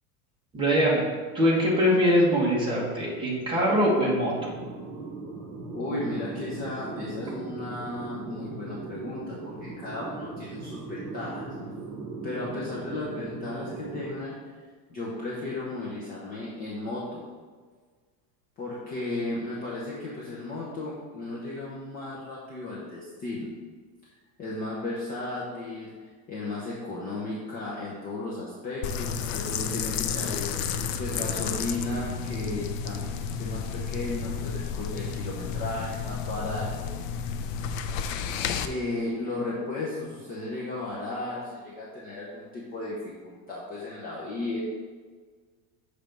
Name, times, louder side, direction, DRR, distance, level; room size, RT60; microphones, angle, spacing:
voice 1, 0.5-1.0 1.3-4.5, equal, 10° right, -5 dB, 1.0 m, -23 dB
sound 1, 4.2-14.1, right 3 dB, 35° right, 0.9 m, -38 dB
voice 2, 5.7-11.5 12.2-14.6 14.9-17.2 18.6-23.5 24.4-33.0 33.4-36.9 38.2-44.6, left 2 dB, 20° left, -6 dB, 0.6 m, -35 dB
sound 2, 28.8-38.7, left 6 dB, 65° left, 0.5 m, -31 dB
6.2 x 3.4 x 5.2 m, 1.5 s
supercardioid pair, 175°, 44 cm